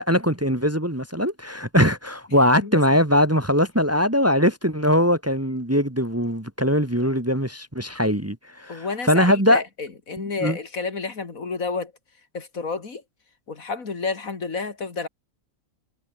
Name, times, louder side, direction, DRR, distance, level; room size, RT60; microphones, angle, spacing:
voice 1, 0.0-9.6 10.4-10.6, equal, 10° right, 1.7 m, -21 dB
voice 2, 8.7-11.9 12.3-13.0 13.5-15.1, left 4 dB, 75° left, 2.9 m, -30 dB
omnidirectional pair, 1.5 m